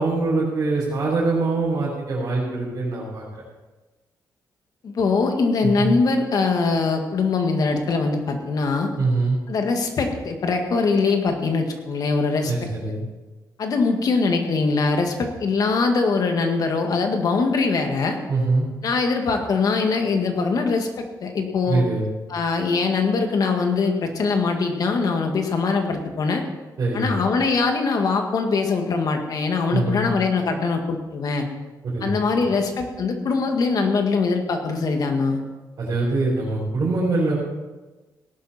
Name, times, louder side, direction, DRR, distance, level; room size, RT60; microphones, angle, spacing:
voice 1, 0.0-3.4 5.6-6.0 9.0-9.4 12.5-13.0 18.3-18.7 21.7-22.1 26.8-27.2 29.7-30.1 31.8-32.1 35.8-37.4, right 3 dB, 50° right, -7 dB, 4.6 m, -23 dB
voice 2, 4.8-8.9 9.5-12.7 13.6-18.2 18.8-21.8 22.3-26.4 26.9-31.5 32.0-35.4, left 4 dB, 60° left, 4 dB, 1.8 m, -22 dB
17.5 x 11.5 x 4.3 m, 1.2 s
wide cardioid pair, 140°, 7 cm